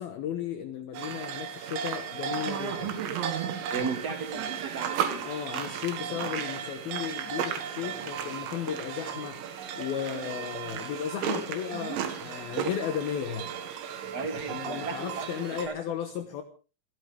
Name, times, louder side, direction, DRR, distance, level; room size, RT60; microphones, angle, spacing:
voice 1, 0.0-3.0 3.8-3.9 5.2-9.4 9.8-13.5 14.5-16.4, left 9 dB, 65° left, 2.7 m, -35 dB
sound 1, 0.9-15.7, right 8 dB, 90° right, 4.0 m, -34 dB
voice 2, 3.7-5.3 14.1-15.7, right 5 dB, 30° right, 2.1 m, -35 dB
28.0 x 13.0 x 3.4 m
omnidirectional pair, 5.2 m